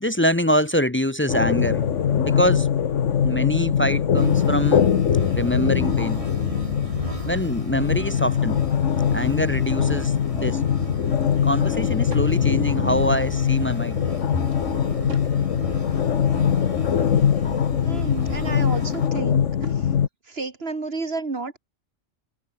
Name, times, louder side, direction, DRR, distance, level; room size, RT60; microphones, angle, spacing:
voice 1, 0.0-2.7 3.2-6.2 7.3-8.6 9.1-10.6 11.2-14.0, equal, 15° left, 0.4 m, -24 dB
sound 1, 1.3-20.1, left 8 dB, 75° left, 1.4 m, -22 dB
sound 2, 4.1-19.1, right 1 dB, 25° right, 6.8 m, -36 dB
Drawer open or close / Wood, 11.4-12.4 14.1-15.4 15.9-17.1 18.4-19.9, right 2 dB, 75° right, 6.9 m, -44 dB
voice 2, 17.8-19.4 20.3-21.6, right 3 dB, 50° right, 2.4 m, -30 dB
omnidirectional pair, 1.3 m